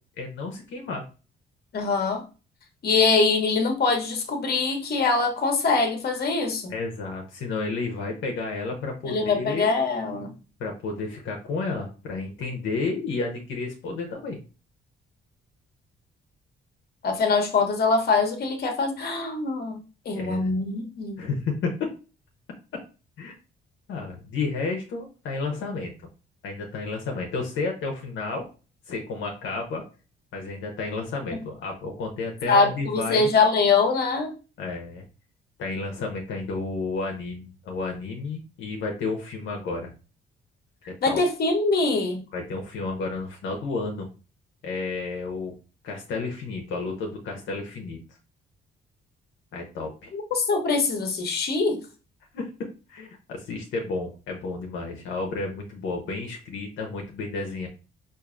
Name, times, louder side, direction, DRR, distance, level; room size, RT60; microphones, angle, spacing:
voice 1, 0.2-1.0 6.7-9.7 10.6-14.4 20.1-20.6 21.2-21.9 23.2-23.3 23.9-25.9 26.4-28.5 28.9-29.8 30.3-33.3 34.6-35.0 35.6-39.9 40.9-41.2 42.3-44.1 44.6-45.5 45.8-48.0 49.5-50.1 52.3-52.5 52.9-57.7, left 3 dB, 75° left, 1 dB, 0.8 m, -31 dB
voice 2, 1.7-2.2 2.8-6.7 9.0-10.3 17.0-19.8 20.0-21.2 32.4-34.3 41.0-42.2 50.1-51.8, left 4 dB, 55° left, 4 dB, 1.0 m, -23 dB
4.6 x 2.6 x 2.5 m, 0.34 s
cardioid pair, 90°, 20 cm